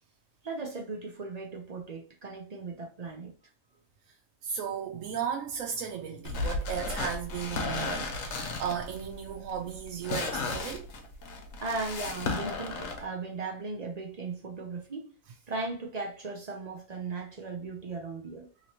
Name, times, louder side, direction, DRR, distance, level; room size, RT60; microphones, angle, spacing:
voice 1, 0.4-3.3 11.6-15.1 15.5-18.5, right 3 dB, 45° right, 0.5 m, -37 dB
voice 2, 4.4-10.9, right 8 dB, 85° right, 1.0 m, -35 dB
sound 1, 6.2-13.0, left 3 dB, 90° left, 1.1 m, -34 dB
2.9 x 2.9 x 2.8 m
omnidirectional pair, 1.3 m